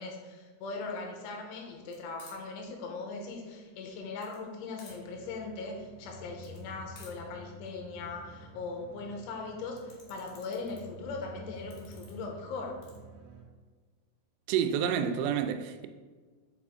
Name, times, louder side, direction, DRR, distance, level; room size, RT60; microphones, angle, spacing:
voice 1, 0.0-12.8, left 3 dB, 85° left, 3.3 m, -40 dB
sound 1, 1.9-13.0, left 4 dB, 70° left, 2.0 m, -59 dB
sound 2, 4.9-13.4, right 1 dB, 70° right, 2.7 m, -50 dB
voice 2, 14.5-15.9, right 8 dB, 90° right, 3.0 m, -29 dB
7.2 x 5.1 x 3.6 m
omnidirectional pair, 5.5 m